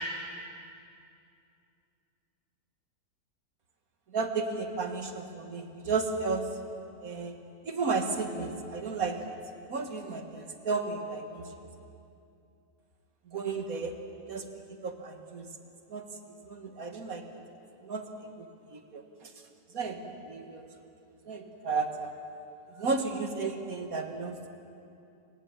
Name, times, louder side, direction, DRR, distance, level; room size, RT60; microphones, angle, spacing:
voice 1, 4.1-6.5 7.0-7.4 7.6-9.2 9.7-11.5 13.3-13.9 14.3-14.5 14.8-15.5 15.9-16.0 16.5-17.3 17.8-18.0 18.4-18.5 18.7-19.0 19.7-20.7 21.3-22.1 22.8-24.5, right 4 dB, 70° right, 6 dB, 2.1 m, -33 dB
29.5 x 17.5 x 7.4 m, 2.6 s
omnidirectional pair, 1.6 m